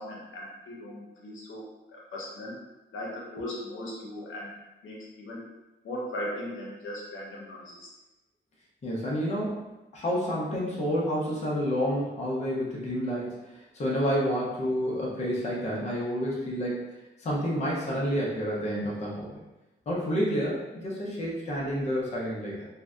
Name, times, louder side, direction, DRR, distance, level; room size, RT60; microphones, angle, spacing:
voice 1, 0.0-1.6 1.9-2.5 2.9-4.5 4.8-5.4 5.8-7.9, left 1 dB, 85° left, -4 dB, 0.7 m, -38 dB
voice 2, 8.8-16.9 17.2-19.4 19.9-22.7, equal, 35° left, -5 dB, 0.5 m, -29 dB
2.6 x 2.1 x 2.3 m, 1.0 s
wide cardioid pair, 150°, 20 cm